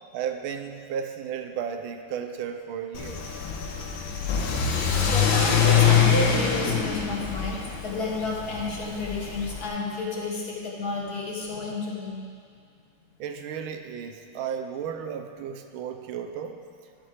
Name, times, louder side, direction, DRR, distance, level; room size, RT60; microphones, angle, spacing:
voice 1, 0.1-3.2 13.2-16.6, right 8 dB, 80° right, 6 dB, 1.5 m, -34 dB
Car / Accelerating revving vroom, 2.9-9.7, left 7 dB, 75° left, 1.7 m, -24 dB
voice 2, 5.0-12.2, left 3 dB, 50° left, -3 dB, 1.5 m, -31 dB
13.0 x 7.8 x 3.4 m, 2.2 s
omnidirectional pair, 2.3 m